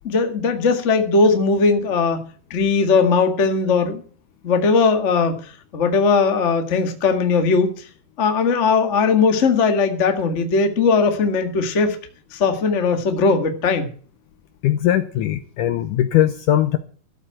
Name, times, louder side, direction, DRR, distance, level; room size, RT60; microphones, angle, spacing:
voice 1, 0.0-2.2 2.5-4.0 4.4-5.4 5.7-7.7 8.2-12.0 12.3-13.9, left 4 dB, 40° left, 1.0 m, -18 dB
voice 2, 14.6-16.8, left 12 dB, 75° left, 2.0 m, -19 dB
13.5 x 8.4 x 7.7 m
omnidirectional pair, 4.4 m